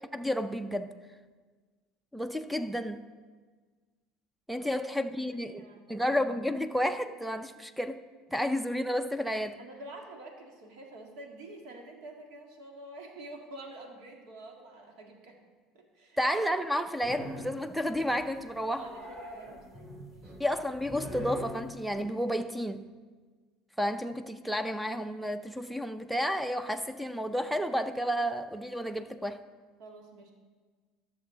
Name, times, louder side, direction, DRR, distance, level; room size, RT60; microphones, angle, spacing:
voice 1, 0.1-0.9 2.1-3.1 4.5-5.6 5.9-8.0 8.3-9.6 16.2-18.8 20.4-22.9 23.8-29.4, equal, ahead, 10 dB, 0.4 m, -31 dB
voice 2, 5.2-6.0 9.6-15.4 15.7-16.2 18.7-20.4 29.8-30.3, right 2 dB, 75° right, 1 dB, 2.0 m, -47 dB
sound 1, 17.0-17.6 17.9-18.4 18.7-22.0, equal, 20° right, 3.0 m, -42 dB
13.5 x 6.9 x 3.9 m, 1.4 s
supercardioid pair, 115°, 0 cm